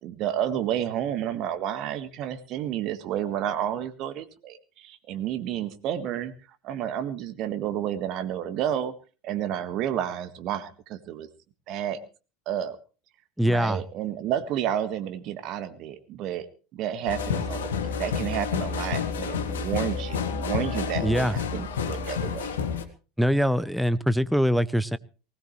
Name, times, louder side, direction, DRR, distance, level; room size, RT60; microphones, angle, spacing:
voice 1, 0.0-6.3 6.6-8.9 9.2-11.3 11.7-12.0 12.4-12.8 13.4-16.5 16.7-22.5, right 10 dB, 50° right, 11 dB, 1.7 m, -30 dB
voice 2, 13.4-13.8 21.0-21.4 23.2-25.0, equal, ahead, 17 dB, 0.8 m, -23 dB
sound 1, 17.1-22.8, left 6 dB, 70° left, 1.8 m, -29 dB
20.0 x 17.5 x 3.2 m, 0.35 s
figure-of-eight pair, 80°, 0 cm